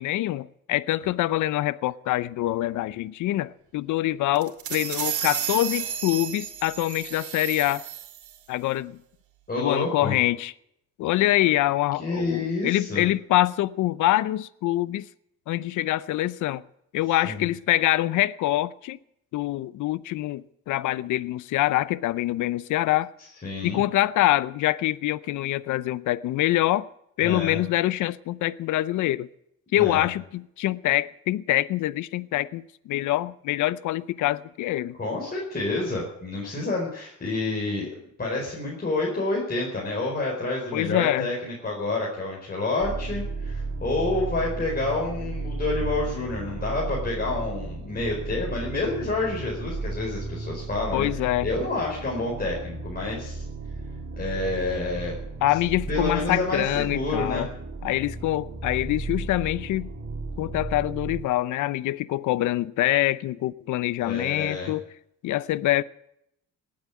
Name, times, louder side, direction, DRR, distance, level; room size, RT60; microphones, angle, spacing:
voice 1, 0.0-7.9 8.5-9.0 9.6-10.5 11.0-15.1 15.5-16.6 16.9-19.0 19.3-23.1 23.6-26.9 27.2-29.3 29.7-35.0 40.7-41.3 50.9-51.5 55.4-57.5 57.8-59.9 60.4-64.9 65.2-65.8, left 15 dB, 80° left, 0.6 m, -25 dB
sound 1, 4.4-8.4, right 9 dB, 75° right, 2.3 m, -32 dB
voice 2, 9.5-10.1 12.0-13.0 17.2-17.4 23.4-23.8 27.2-27.6 29.7-30.0 35.0-37.9 38.2-53.4 54.2-55.1 55.9-57.5 64.0-64.7, left 2 dB, 30° left, 4.7 m, -28 dB
sound 2, 42.8-61.2, right 3 dB, 45° right, 3.1 m, -34 dB
18.5 x 8.8 x 8.4 m
cardioid pair, 90°, 30 cm